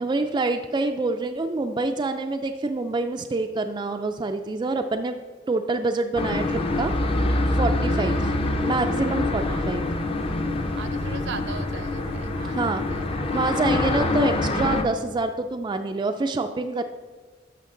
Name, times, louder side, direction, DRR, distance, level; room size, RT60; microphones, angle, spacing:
voice 1, 0.0-5.2 5.5-6.9 7.5-8.3 8.6-9.8 12.5-12.9 13.3-16.8, right 3 dB, 25° right, 6 dB, 0.3 m, -26 dB
sound 1, 6.2-14.8, left 2 dB, 30° left, 0.6 m, -25 dB
voice 2, 7.8-8.3 9.4-9.7 10.8-13.8, right 5 dB, 65° right, 11 dB, 0.6 m, -40 dB
12.5 x 5.8 x 3.8 m, 1.5 s
head